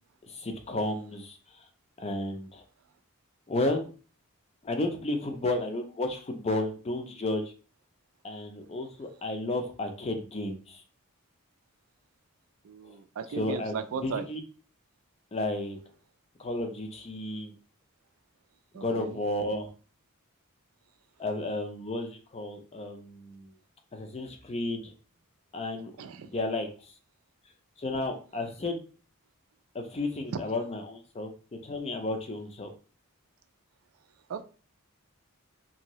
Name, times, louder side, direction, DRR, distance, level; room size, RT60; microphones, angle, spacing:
voice 1, 0.3-1.4 2.0-2.6 3.5-3.9 4.6-7.5 8.2-10.8 13.3-14.4 15.3-15.8 16.4-17.5 18.7-19.7 21.2-23.5 23.9-24.9 25.5-25.9 26.2-26.7 27.8-28.8 29.7-31.3 31.6-32.7, left 2 dB, 30° left, 5 dB, 0.4 m, -32 dB
voice 2, 12.6-14.3 18.7-19.2 26.0-26.3 34.3-34.4, right 6 dB, 70° right, 10 dB, 0.4 m, -36 dB
2.7 x 2.6 x 3.0 m, 0.37 s
head